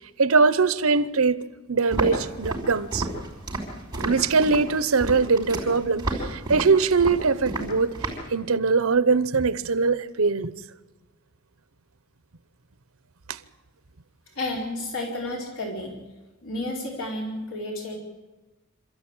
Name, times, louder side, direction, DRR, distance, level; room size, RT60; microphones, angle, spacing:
voice 1, 0.2-1.4 1.7-3.1 4.0-7.9 8.3-10.5 13.3-13.4, right 4 dB, 85° right, 0.9 m, -22 dB
Walk footsteps, 1.9-8.3, right 2 dB, 20° right, 5.6 m, -31 dB
voice 2, 14.3-16.0 16.4-18.0, left 1 dB, 80° left, 4.5 m, -31 dB
27.5 x 14.0 x 8.9 m
head